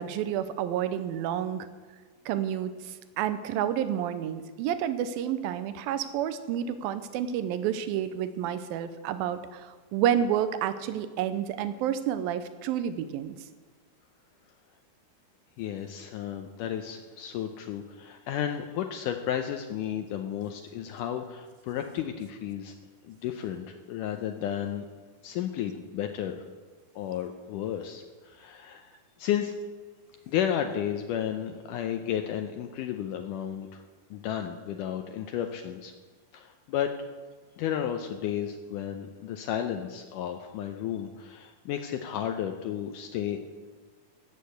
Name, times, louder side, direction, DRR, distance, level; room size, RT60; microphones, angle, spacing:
voice 1, 0.0-1.7 2.3-2.7 3.2-13.4, right 10 dB, 80° right, 12 dB, 2.3 m, -29 dB
voice 2, 15.6-22.7 23.0-24.9 25.2-26.4 27.0-29.5 30.3-33.8 34.1-35.9 36.3-36.9 37.6-43.4, left 10 dB, 90° left, 5 dB, 1.8 m, -33 dB
15.5 x 6.6 x 8.0 m, 1.4 s
omnidirectional pair, 4.5 m